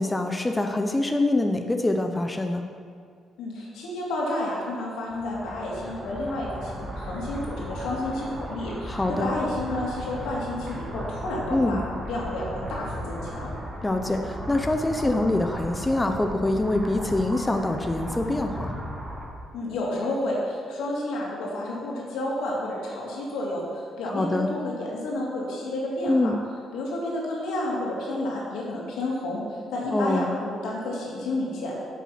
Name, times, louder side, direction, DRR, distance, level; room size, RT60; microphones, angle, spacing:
voice 1, 0.0-2.6 8.9-9.3 11.5-11.8 13.8-18.7 24.1-24.5 26.1-26.4 29.9-30.3, left 2 dB, 15° left, 5 dB, 0.7 m, -25 dB
voice 2, 3.4-11.8 12.0-13.5 19.5-26.3 26.7-31.7, left 1 dB, 85° left, -3 dB, 2.5 m, -30 dB
sound 1, 5.1-19.3, equal, 30° right, 2.6 m, -36 dB
8.0 x 7.5 x 5.7 m, 2.1 s
cardioid pair, 90°, 0 cm